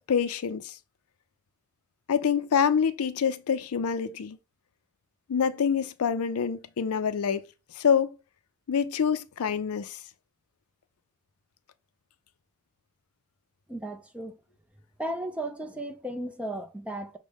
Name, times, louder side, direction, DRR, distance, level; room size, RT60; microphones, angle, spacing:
voice 1, 0.1-0.7 2.1-4.4 5.3-7.4 7.8-8.1 8.7-10.0, left 7 dB, 70° left, 0.4 m, -26 dB
voice 2, 13.7-14.3 15.0-17.2, right 1 dB, 5° right, 0.5 m, -35 dB
6.3 x 2.1 x 3.4 m
head